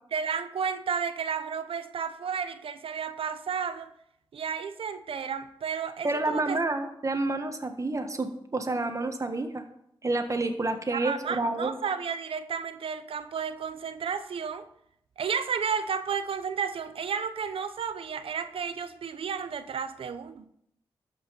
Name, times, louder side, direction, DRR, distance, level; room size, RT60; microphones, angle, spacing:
voice 1, 0.1-3.9 4.3-6.6 10.9-14.7 15.2-20.5, right 6 dB, 75° right, 0.8 m, -32 dB
voice 2, 6.0-9.6 10.0-11.7, right 2 dB, 35° right, 1.6 m, -29 dB
13.5 x 5.4 x 5.3 m
cardioid pair, 60°, 10 cm